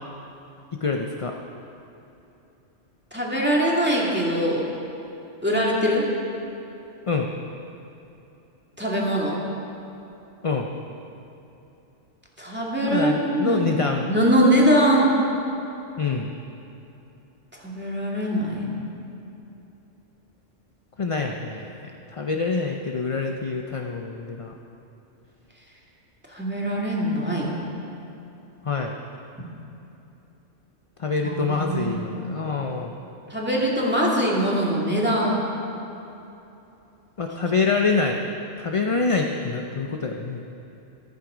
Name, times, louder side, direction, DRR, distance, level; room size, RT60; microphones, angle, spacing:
voice 1, 0.7-1.4 7.1-7.3 10.4-10.7 12.9-14.1 16.0-16.3 21.0-24.5 28.6-29.0 31.0-33.0 37.2-38.3 38.6-40.4, left 4 dB, 35° left, 3 dB, 0.5 m, -26 dB
voice 2, 3.1-4.7 5.4-6.1 8.8-9.4 12.4-13.7 14.1-15.1 17.5-18.9 26.3-27.5 31.2-32.1 33.3-35.4, equal, 10° right, -4 dB, 2.3 m, -22 dB
15.0 x 13.0 x 5.0 m, 2.9 s
omnidirectional pair, 1.3 m